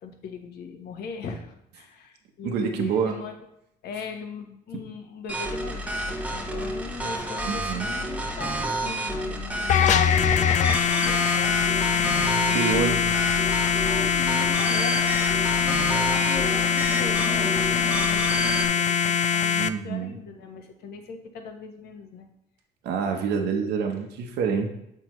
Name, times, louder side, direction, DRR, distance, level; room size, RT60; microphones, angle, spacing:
voice 1, 0.0-3.4 3.8-12.6 13.8-15.2 15.5-22.3, left 5 dB, 70° left, 5 dB, 1.1 m, -39 dB
voice 2, 2.4-3.1 7.5-7.9 12.5-13.2 19.6-20.1 22.8-24.7, right 6 dB, 80° right, 4 dB, 1.0 m, -27 dB
sound 1, 5.3-18.7, right 1 dB, 5° right, 1.0 m, -30 dB
sound 2, 9.7-19.7, left 7 dB, 45° left, 0.4 m, -23 dB
7.7 x 5.7 x 3.1 m, 0.78 s
cardioid pair, 110°, 17 cm